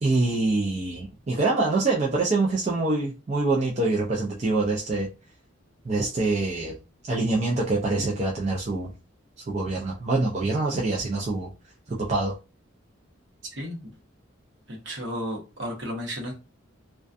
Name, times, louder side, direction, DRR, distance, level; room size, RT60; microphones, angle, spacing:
voice 1, 0.0-5.1 5.9-6.8 7.1-8.9 9.5-11.5 11.9-12.3, right 3 dB, 30° right, 0.4 m, -25 dB
voice 2, 13.6-13.9 14.7-16.3, equal, 60° right, 0.8 m, -33 dB
2.3 x 2.2 x 2.5 m
head